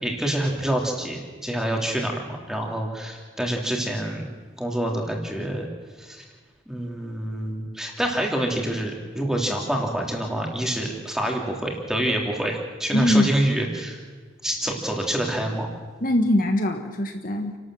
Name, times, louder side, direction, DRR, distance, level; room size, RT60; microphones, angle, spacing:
voice 1, 0.0-4.3 4.6-5.7 6.0-6.2 6.7-14.0 14.4-15.7, right 1 dB, 5° right, 0 dB, 2.9 m, -27 dB
voice 2, 12.9-13.3 16.0-17.6, left 1 dB, 45° left, 5 dB, 1.3 m, -22 dB
29.5 x 12.5 x 7.7 m, 1.4 s
head